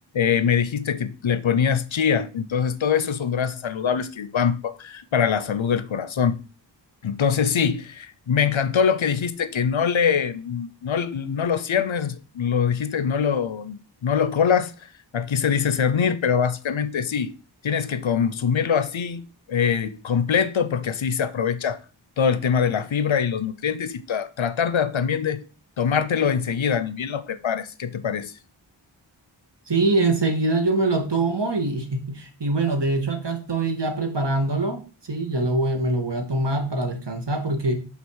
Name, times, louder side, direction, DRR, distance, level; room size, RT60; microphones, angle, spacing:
voice 1, 0.1-6.4 7.0-14.7 15.1-17.3 17.6-19.2 19.5-21.8 22.2-25.4 25.8-28.3, left 7 dB, 75° left, 0.7 m, -23 dB
voice 2, 29.7-37.7, right 2 dB, 60° right, 1.6 m, -24 dB
6.0 x 4.1 x 6.3 m
wide cardioid pair, 50°, 47 cm